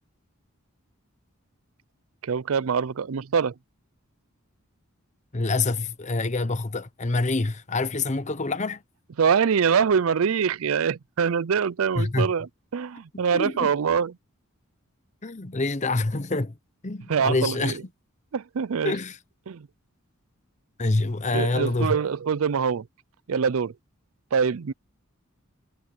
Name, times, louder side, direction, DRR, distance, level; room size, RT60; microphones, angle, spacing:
voice 1, 2.2-3.5 9.2-14.1 17.1-17.8 18.3-19.0 19.5-19.7 21.3-22.9 23.3-23.7 24.3-24.7, right 6 dB, 80° right, 0.5 m, -24 dB
voice 2, 5.3-8.8 12.0-12.3 13.3-13.7 15.2-16.6 16.8-17.8 18.8-19.2 20.8-22.0, left 3 dB, 35° left, 0.9 m, -26 dB
head